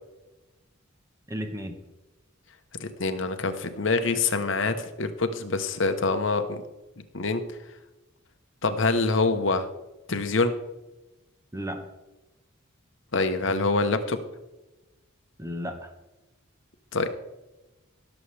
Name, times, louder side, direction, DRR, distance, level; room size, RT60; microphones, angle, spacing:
voice 1, 1.3-1.7 11.5-11.9 15.4-15.9, equal, 15° right, 6 dB, 1.0 m, -33 dB
voice 2, 2.8-6.6 7.1-7.4 8.6-9.7 10.1-10.5 13.1-14.2 16.9-17.1, left 3 dB, 65° left, 8 dB, 0.9 m, -25 dB
16.5 x 7.1 x 3.3 m, 1.0 s
head